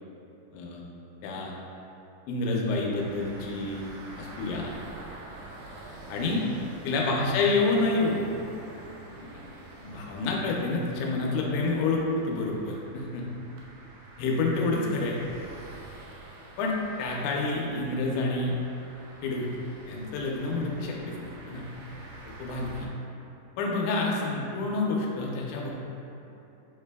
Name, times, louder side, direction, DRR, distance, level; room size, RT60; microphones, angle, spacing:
voice 1, 0.5-0.8 1.2-1.5 2.3-3.8 4.2-4.7 6.1-6.4 6.8-8.2 9.8-13.3 14.2-15.2 16.6-18.6 19.2-19.6 19.9-21.7 22.4-22.9 23.6-25.7, left 3 dB, 85° left, -2 dB, 1.7 m, -28 dB
sound 1, 2.9-22.9, right 2 dB, 80° right, 2.0 m, -47 dB
6.6 x 3.2 x 2.2 m, 3.0 s
omnidirectional pair, 4.1 m